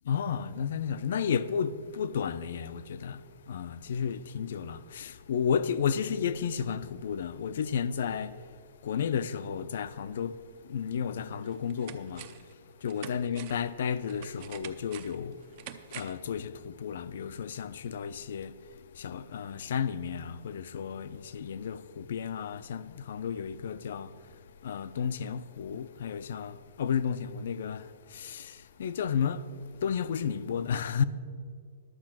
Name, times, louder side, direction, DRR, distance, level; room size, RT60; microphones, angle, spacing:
voice 1, 0.1-8.5 8.8-15.6 15.9-29.5 29.7-31.0, left 7 dB, 60° left, 0.5 m, -33 dB
sound 1, 10.9-11.0 11.4-12.5 12.9-16.3 16.6-16.7, right 11 dB, 35° right, 0.6 m, -47 dB
11.0 x 7.5 x 6.0 m
hypercardioid pair, 170°, 0 cm